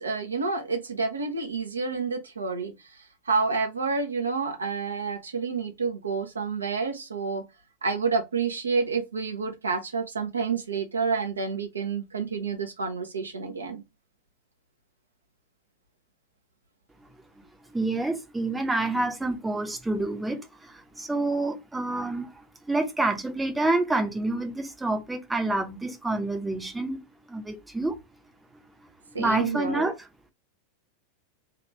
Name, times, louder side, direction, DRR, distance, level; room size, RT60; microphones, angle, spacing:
voice 1, 0.0-7.4 7.8-13.8 29.1-29.9, right 4 dB, 75° right, 0.7 m, -29 dB
voice 2, 17.7-27.0 27.3-28.0 29.2-29.9, right 2 dB, 10° right, 0.7 m, -28 dB
3.4 x 2.5 x 2.8 m
figure-of-eight pair, 90°, 0 cm